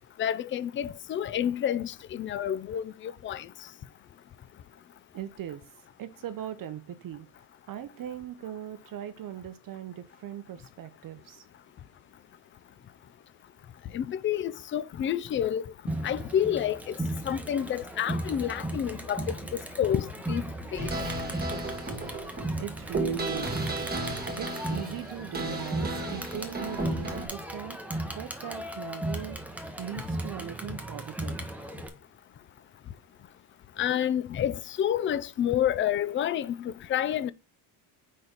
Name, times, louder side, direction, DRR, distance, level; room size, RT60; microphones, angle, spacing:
voice 1, 0.2-3.5 13.9-15.6 16.0-17.0 17.2-20.4 20.7-20.9 33.8-37.3, left 10 dB, 30° left, 0.3 m, -29 dB
voice 2, 5.1-5.7 6.0-7.3 7.7-11.5 22.6-23.7 24.4-31.4, right 11 dB, 45° right, 0.7 m, -39 dB
Crowd, 15.9-31.9, right 1 dB, 5° right, 1.1 m, -36 dB
sound 1, 20.8-27.3, right 2 dB, 20° right, 2.1 m, -34 dB
5.2 x 4.0 x 5.9 m
cardioid pair, 120°, 48 cm